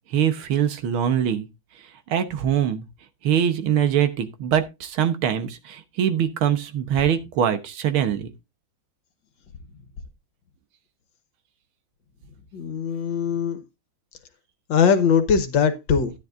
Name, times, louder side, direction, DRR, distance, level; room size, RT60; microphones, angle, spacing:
voice 1, 0.1-1.5 2.1-2.9 3.2-8.3, right 9 dB, 85° right, 1.9 m, -23 dB
voice 2, 12.5-13.6 14.7-16.1, left 6 dB, 70° left, 1.8 m, -21 dB
13.0 x 9.7 x 2.5 m
omnidirectional pair, 2.2 m